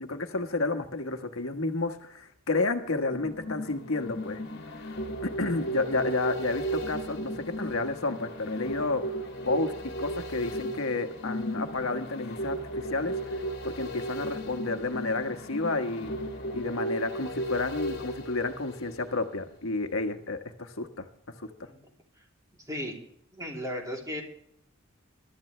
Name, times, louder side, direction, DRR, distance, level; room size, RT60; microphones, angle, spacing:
voice 1, 0.0-4.4 4.8-4.9 5.2-9.1 9.4-9.7 10.0-16.1 16.5-21.0 21.4-21.5, left 3 dB, 80° left, 6 dB, 1.4 m, -31 dB
sound 1, 3.1-19.4 19.7-19.8, right 1 dB, 50° left, 2.0 m, -35 dB
voice 2, 23.3-24.2, equal, 15° right, 0 dB, 3.2 m, -35 dB
22.0 x 12.5 x 3.3 m, 0.67 s
head